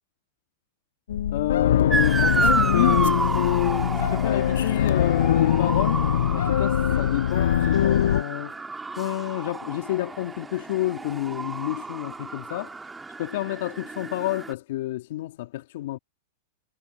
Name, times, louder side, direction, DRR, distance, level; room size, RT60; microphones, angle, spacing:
sound 1, 1.1-8.2, left 10 dB, 80° left, 0.4 m, -22 dB
voice 1, 1.3-6.0 6.3-8.6 8.9-12.8 13.2-16.0, left 16 dB, 65° left, 2.5 m, -29 dB
Motor vehicle (road) / Siren, 1.9-14.5, right 3 dB, 10° right, 3.0 m, -30 dB
hypercardioid pair, 130°, 0 cm